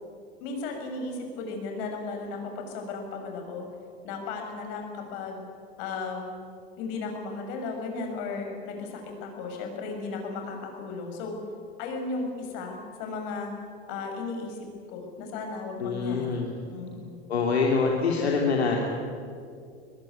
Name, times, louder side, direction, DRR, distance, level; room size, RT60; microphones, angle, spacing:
voice 1, 0.4-3.7 4.0-5.4 5.8-6.4 6.8-11.4 11.8-13.5 13.9-16.4 16.7-17.2, left 3 dB, 65° left, 3 dB, 6.4 m, -35 dB
voice 2, 15.8-16.5 17.3-18.8, left 4 dB, 90° left, 0 dB, 3.0 m, -25 dB
21.5 x 21.5 x 9.4 m, 2.3 s
hypercardioid pair, 85°, 31 cm